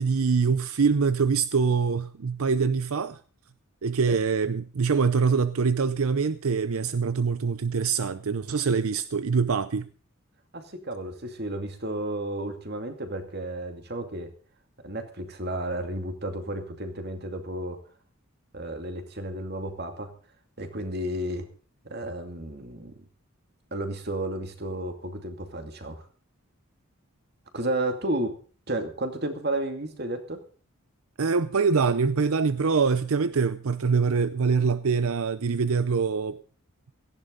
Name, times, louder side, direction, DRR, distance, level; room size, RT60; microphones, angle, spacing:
voice 1, 0.0-3.2 3.8-9.9 31.2-36.4, right 5 dB, 80° right, 0.6 m, -24 dB
voice 2, 10.5-14.3 14.8-17.8 18.5-20.1 20.6-21.5 21.8-22.9 23.7-26.1 27.5-28.3 28.7-30.4, right 1 dB, 45° right, 2.5 m, -32 dB
17.5 x 15.0 x 3.9 m
head